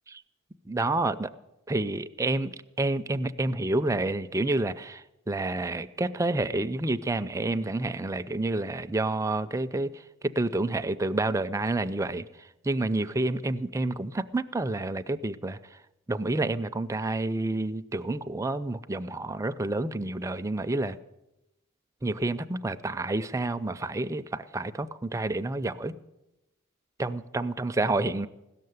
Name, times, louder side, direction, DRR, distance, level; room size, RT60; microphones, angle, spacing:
voice 1, 0.7-1.3 1.7-15.8 16.1-21.0 22.0-25.9 27.0-28.3, right 2 dB, 15° right, 11 dB, 0.4 m, -29 dB
16.5 x 6.6 x 9.3 m, 0.95 s
head